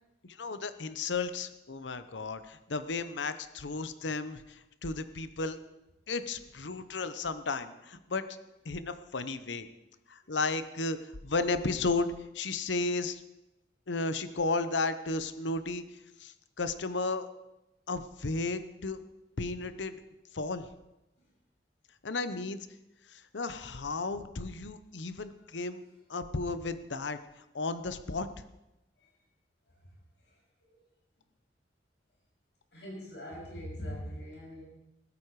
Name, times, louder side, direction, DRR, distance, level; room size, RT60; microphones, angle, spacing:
voice 1, 0.2-5.6 6.1-8.2 8.6-9.7 10.1-13.2 13.9-15.8 16.2-17.3 17.9-19.0 19.4-20.0 20.3-20.7 22.0-22.6 23.1-25.8 26.1-27.2 27.5-28.3, left 3 dB, 85° left, 11 dB, 0.9 m, -34 dB
voice 2, 32.7-34.6, equal, 70° left, -3 dB, 7.1 m, -41 dB
16.0 x 13.5 x 4.8 m, 0.92 s
head